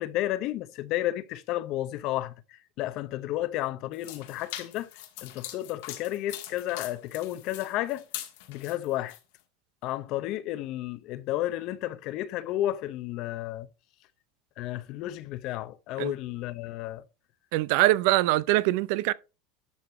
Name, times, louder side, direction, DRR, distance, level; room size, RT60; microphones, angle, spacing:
voice 1, 0.0-4.9 5.2-8.1 8.5-9.2 9.8-13.7 14.6-17.0, left 14 dB, 55° left, 0.8 m, -32 dB
sound 1, 3.9-9.2, left 13 dB, 75° left, 1.7 m, -41 dB
voice 2, 17.5-19.1, right 17 dB, 70° right, 0.4 m, -23 dB
11.5 x 4.0 x 4.5 m
supercardioid pair, 125°, 0 cm